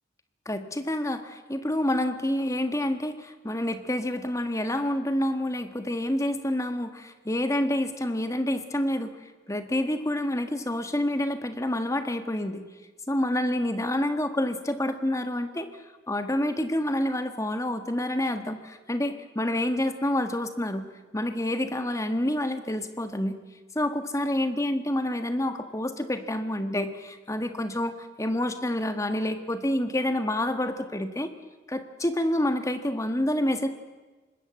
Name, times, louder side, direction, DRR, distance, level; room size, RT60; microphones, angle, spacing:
voice 1, 0.4-9.2 9.5-12.6 13.1-15.7 16.1-23.4 23.7-31.3 31.7-33.7, left 1 dB, 15° left, 8 dB, 1.6 m, -28 dB
25.0 x 20.5 x 7.7 m, 1.3 s
head